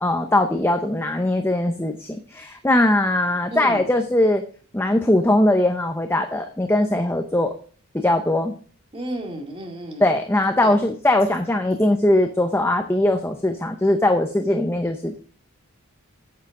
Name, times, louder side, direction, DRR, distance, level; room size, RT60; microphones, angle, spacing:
voice 1, 0.0-4.4 4.7-7.5 7.9-8.5 10.0-15.2, left 1 dB, 10° left, 5 dB, 0.7 m, -20 dB
voice 2, 3.5-4.0 8.9-10.3 10.6-10.8, right 1 dB, 25° right, 2 dB, 2.1 m, -33 dB
9.5 x 8.2 x 3.7 m, 0.42 s
head